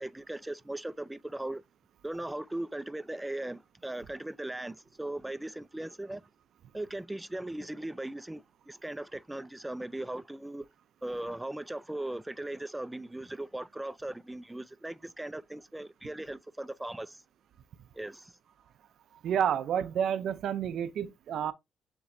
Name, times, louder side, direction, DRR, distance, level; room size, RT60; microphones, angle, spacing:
voice 1, 0.0-1.6 2.0-6.2 6.7-10.7 11.0-17.2 17.9-18.3, right 1 dB, 10° right, 0.3 m, -38 dB
voice 2, 19.2-21.5, right 9 dB, 70° right, 0.5 m, -30 dB
6.9 x 3.0 x 2.6 m
cardioid pair, 90°, 0 cm